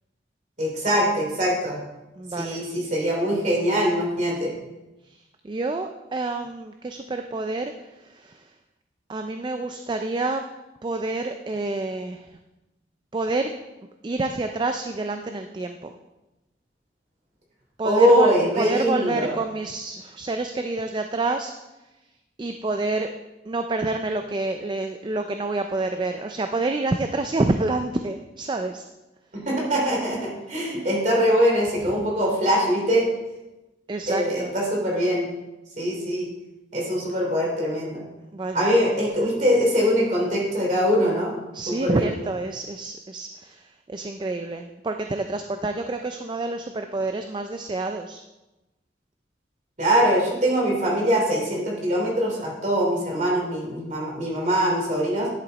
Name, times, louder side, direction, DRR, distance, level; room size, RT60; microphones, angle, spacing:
voice 1, 0.6-1.8 2.4-4.5 17.8-19.3 29.4-33.1 34.1-35.3 35.8-36.3 36.7-38.0 38.5-41.3 41.7-42.1 49.8-55.3, equal, 45° right, -3 dB, 3.0 m, -22 dB
voice 2, 2.2-2.7 5.0-8.5 9.1-10.4 10.8-12.4 13.1-13.5 14.0-15.9 17.8-21.5 22.4-23.1 23.5-28.8 33.9-34.6 38.3-38.7 41.5-48.2, right 2 dB, 25° right, 6 dB, 0.4 m, -28 dB
10.5 x 6.3 x 4.0 m, 1.0 s
head